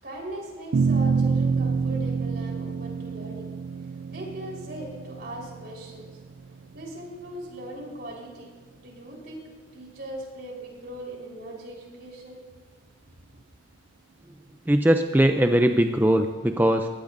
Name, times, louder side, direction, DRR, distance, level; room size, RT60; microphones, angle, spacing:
voice 1, 0.0-3.5 3.8-6.2 6.7-8.5 8.8-9.4 9.7-12.4, right 1 dB, 60° right, -1 dB, 4.2 m, -40 dB
sound 1, 0.7-7.3, right 5 dB, 80° right, 0.4 m, -27 dB
voice 2, 14.7-16.9, right 1 dB, 10° right, 6 dB, 0.4 m, -20 dB
22.0 x 16.5 x 2.6 m, 1.4 s
head